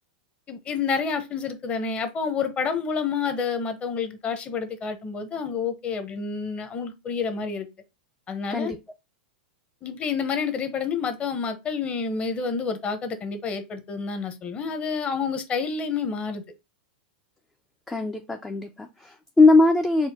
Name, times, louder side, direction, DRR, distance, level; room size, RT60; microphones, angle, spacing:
voice 1, 0.5-7.7 8.3-8.7 9.8-16.4, left 5 dB, 25° left, 0.7 m, -29 dB
voice 2, 17.9-20.1, left 3 dB, 10° left, 0.3 m, -20 dB
4.5 x 2.1 x 3.4 m
supercardioid pair, 135°, 5 cm